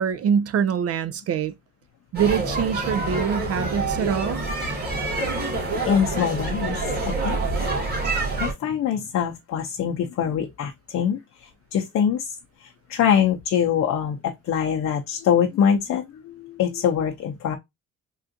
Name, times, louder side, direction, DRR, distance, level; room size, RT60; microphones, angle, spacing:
voice 1, 0.0-1.5 2.1-4.4, right 7 dB, 55° right, 0.4 m, -24 dB
sound 1, 2.1-8.5, right 2 dB, 35° right, 1.8 m, -26 dB
voice 2, 5.8-7.4 8.4-12.4 12.6-17.6, left 8 dB, 65° left, 0.6 m, -24 dB
3.6 x 2.4 x 2.6 m
cardioid pair, 90°, 30 cm